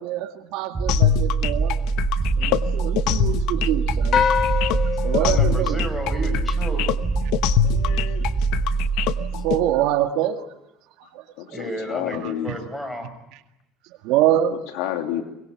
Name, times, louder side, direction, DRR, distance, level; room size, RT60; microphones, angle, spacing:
voice 1, 0.0-1.8 2.4-4.3 4.7-5.8 9.2-10.5 11.0-11.6 12.2-12.6 13.8-14.6, right 12 dB, 70° right, 6 dB, 2.0 m, -25 dB
sound 1, 0.7-9.8, right 4 dB, 15° right, 1.1 m, -24 dB
sound 2, 0.9-9.6, left 12 dB, 65° left, 1.1 m, -24 dB
sound 3, 4.1-6.7, left 8 dB, 40° left, 1.5 m, -25 dB
voice 2, 5.2-6.9 11.5-13.1, equal, 5° left, 7 dB, 5.1 m, -32 dB
voice 3, 7.6-8.5 11.4-12.6 14.7-15.2, left 11 dB, 80° left, 4 dB, 2.9 m, -30 dB
23.0 x 21.0 x 9.0 m, 0.89 s
cardioid pair, 145°, 0 cm